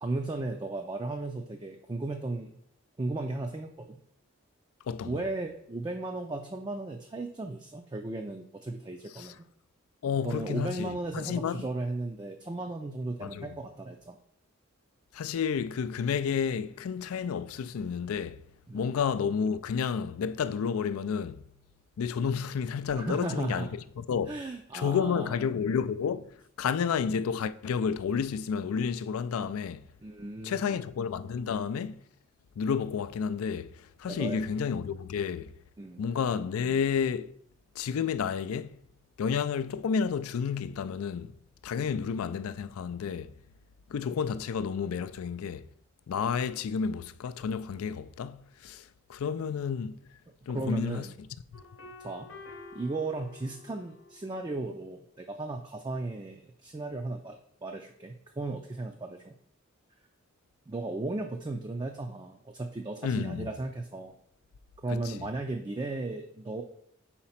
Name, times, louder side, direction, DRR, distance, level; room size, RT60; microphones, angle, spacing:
voice 1, 0.0-2.5 3.0-4.0 5.0-9.4 10.2-14.2 18.7-18.9 23.0-23.7 24.3-25.4 30.0-30.9 34.0-34.4 35.8-36.1 50.5-51.1 52.0-52.3 52.7-59.3 60.7-64.1 64.8-66.6, right 2 dB, 20° right, 0.3 m, -35 dB
voice 2, 4.9-5.2 9.1-9.3 10.0-11.7 13.2-13.5 15.1-18.4 18.7-21.4 22.0-23.7 24.0-24.3 24.7-29.8 30.4-32.0 32.6-35.5 36.0-37.3 37.8-38.7 39.2-41.3 41.6-43.3 43.9-45.7 46.1-48.8 49.1-50.0 50.5-51.1 51.5-51.6 63.0-63.5 64.9-65.3, left 6 dB, 90° left, 0.4 m, -31 dB
sound 1, 51.5-54.4, left 3 dB, 60° left, 0.9 m, -49 dB
4.9 x 4.3 x 5.6 m
head